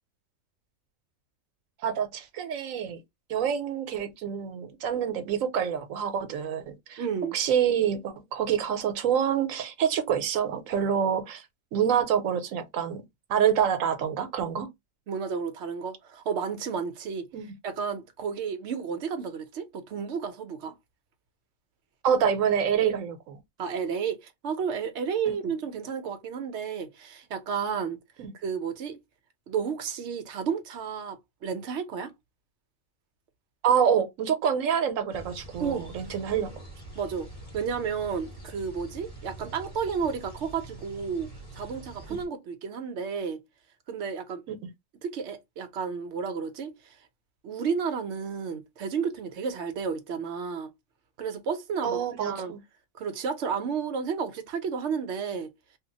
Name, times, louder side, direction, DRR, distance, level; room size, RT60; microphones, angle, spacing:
voice 1, 1.8-3.0 3.3-7.0 7.3-11.5 11.7-13.0 13.3-14.7 17.3-17.5 22.0-23.4 25.3-25.4 28.2-28.3 33.6-36.5 44.5-44.6 51.8-52.6, right 8 dB, 85° right, 1.1 m, -27 dB
voice 2, 7.0-7.4 15.1-17.3 17.6-20.7 23.6-28.0 28.4-29.0 29.5-32.1 35.6-35.9 36.9-37.3 37.5-43.4 43.9-44.4 45.0-47.0 47.4-50.7 51.2-52.5 52.9-55.5, right 6 dB, 65° right, 0.9 m, -32 dB
sound 1, 35.1-42.3, right 2 dB, 30° left, 1.4 m, -45 dB
2.9 x 2.4 x 3.8 m
omnidirectional pair, 1.3 m